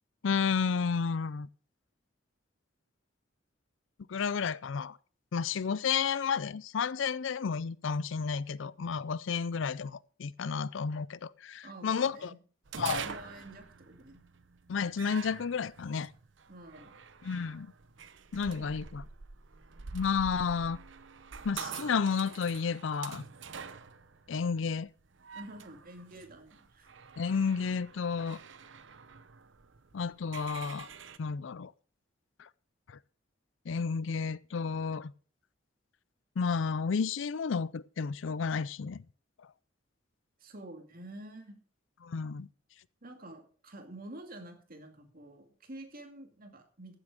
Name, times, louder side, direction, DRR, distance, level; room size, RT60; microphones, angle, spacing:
voice 1, 0.2-1.5 4.1-5.0 5.3-12.3 12.8-13.0 14.7-16.1 17.2-17.7 18.3-19.0 19.9-20.8 21.4-23.2 24.3-24.9 27.2-28.4 29.9-30.9 31.2-31.7 32.4-32.5 32.9-33.0 33.7-35.1 36.4-39.0 42.0-42.5, left 5 dB, 75° left, 0.5 m, -31 dB
voice 2, 11.6-12.4 12.9-14.2 16.5-17.0 18.4-18.7 25.3-26.9 40.4-41.6 43.0-47.0, right 1 dB, 50° right, 2.4 m, -48 dB
sound 1, 12.7-31.2, right 6 dB, 70° right, 0.8 m, -46 dB
15.0 x 7.9 x 4.9 m
head